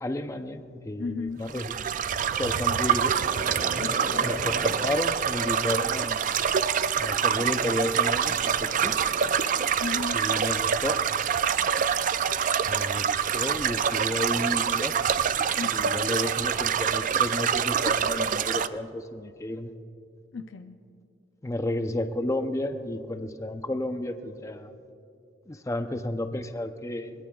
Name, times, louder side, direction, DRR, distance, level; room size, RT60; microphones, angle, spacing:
voice 1, 0.0-1.7 2.3-3.1 4.2-6.2 7.0-8.9 10.1-11.0 12.7-15.0 15.6-19.7 21.4-24.7 25.5-27.1, left 1 dB, 15° left, 8 dB, 0.5 m, -32 dB
voice 2, 1.0-1.5 3.8-4.3 9.8-10.2 15.6-16.1 20.3-20.8, left 4 dB, 75° left, 7 dB, 0.5 m, -35 dB
sound 1, 1.5-18.7, right 7 dB, 45° right, 0.4 m, -26 dB
sound 2, 2.9-5.0 6.8-7.0 8.5-9.3, equal, 25° right, 3.3 m, -37 dB
21.5 x 20.5 x 2.3 m, 2.4 s
head